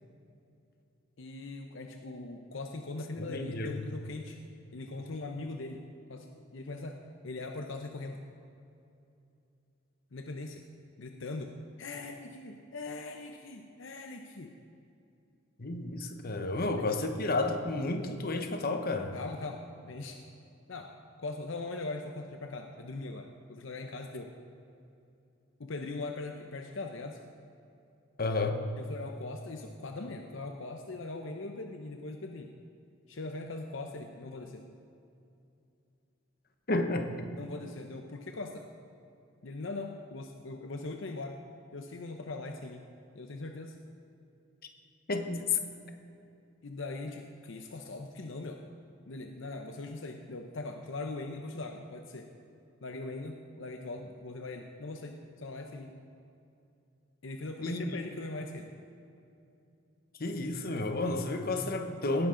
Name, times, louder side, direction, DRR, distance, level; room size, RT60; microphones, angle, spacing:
voice 1, 1.2-4.4 4.7-8.3 10.1-10.6 11.0-14.5 16.5-16.9 19.1-20.2 20.7-20.9 21.2-24.3 25.6-27.2 28.8-32.6 33.1-34.6 37.4-38.6 39.4-41.4 41.7-42.8 43.1-43.8 46.6-48.6 49.1-52.3 52.8-55.9 57.2-58.7, left 2 dB, 65° left, 4 dB, 0.7 m, -41 dB
voice 2, 3.2-3.7 15.6-19.1 28.2-28.6 36.7-37.3 45.1-45.6 57.6-57.9 60.2-62.3, left 2 dB, 45° left, 6 dB, 1.0 m, -31 dB
18.0 x 10.5 x 3.8 m, 2.6 s
head